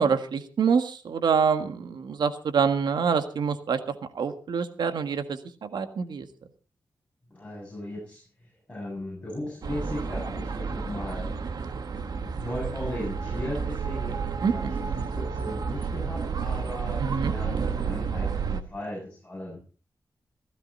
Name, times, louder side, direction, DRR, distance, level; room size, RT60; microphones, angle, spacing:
voice 1, 0.0-6.3 14.4-14.8 17.0-17.3, right 6 dB, 85° right, 8 dB, 1.6 m, -26 dB
voice 2, 7.3-11.3 12.2-19.6, left 1 dB, 15° left, -5 dB, 7.8 m, -37 dB
sound 1, 9.6-18.6, right 5 dB, 65° right, 1.4 m, -31 dB
16.0 x 15.0 x 4.3 m, 0.38 s
wide cardioid pair, 130°, 7 cm